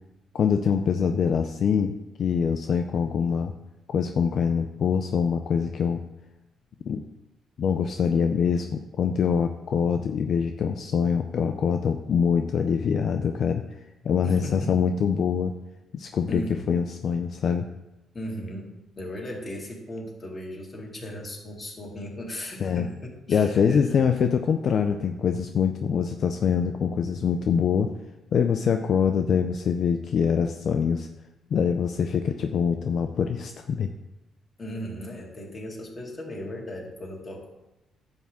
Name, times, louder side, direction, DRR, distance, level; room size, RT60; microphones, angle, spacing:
voice 1, 0.3-3.5 3.9-6.0 6.9-7.0 7.6-15.5 15.9-17.7 22.6-22.9 23.3-27.9 28.3-31.1 31.5-33.9, left 7 dB, 60° left, 6 dB, 0.5 m, -24 dB
voice 2, 14.2-14.8 16.3-16.8 18.1-24.1 34.6-37.5, equal, 25° left, -1 dB, 2.4 m, -37 dB
10.5 x 3.6 x 7.4 m, 0.98 s
cardioid pair, 90°, 0 cm